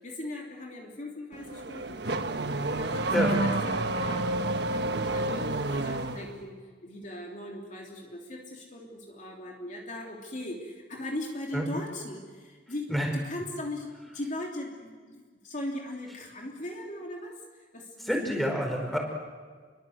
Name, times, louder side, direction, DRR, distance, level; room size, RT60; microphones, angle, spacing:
voice 1, 0.0-13.9 14.1-18.1, left 1 dB, 40° left, 0 dB, 3.2 m, -39 dB
Car / Accelerating revving vroom, 1.3-6.3, right 2 dB, 60° right, 1.4 m, -29 dB
voice 2, 18.0-19.0, equal, ahead, 1 dB, 4.8 m, -27 dB
30.0 x 23.0 x 8.0 m, 1.5 s
head